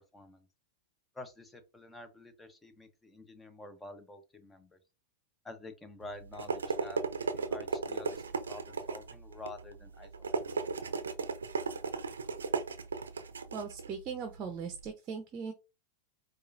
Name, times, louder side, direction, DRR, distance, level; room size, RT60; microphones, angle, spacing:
voice 1, 0.1-0.5 1.1-4.8 5.4-7.0 7.3-10.4, left 2 dB, 10° left, 0.8 m, -48 dB
sound 1, 6.0-14.9, right 5 dB, 90° right, 0.5 m, -36 dB
voice 2, 13.5-15.5, right 6 dB, 35° right, 0.6 m, -39 dB
4.7 x 2.5 x 2.5 m
hypercardioid pair, 105°, 0 cm